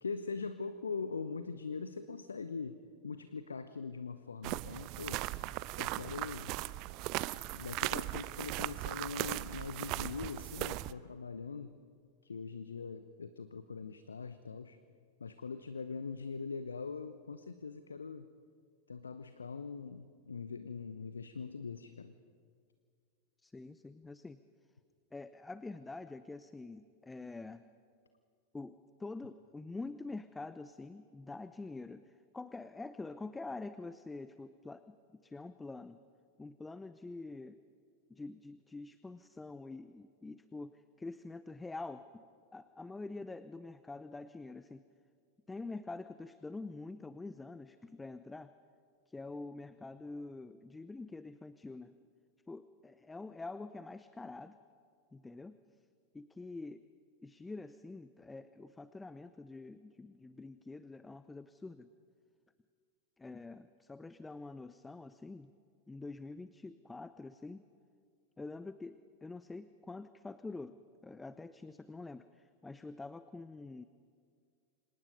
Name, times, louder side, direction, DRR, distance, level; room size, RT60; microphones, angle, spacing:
voice 1, 0.0-5.2 5.8-6.5 7.5-11.8 12.2-14.8 15.2-18.3 18.9-22.2, left 5 dB, 75° left, 12 dB, 0.8 m, -42 dB
sound 1, 4.4-10.9, right 18 dB, 40° right, 0.5 m, -38 dB
voice 2, 23.4-24.4 25.1-27.6 28.5-34.9 35.2-36.0 36.4-37.6 38.1-42.2 42.5-44.8 45.5-48.5 49.1-51.9 52.5-54.5 55.1-55.6 56.1-56.8 57.2-61.9 63.2-65.5 65.9-67.6 68.4-70.8 71.0-73.8, left 3 dB, 10° left, 13 dB, 0.7 m, -46 dB
29.5 x 26.0 x 5.4 m, 2.2 s
figure-of-eight pair, 90°, 0 cm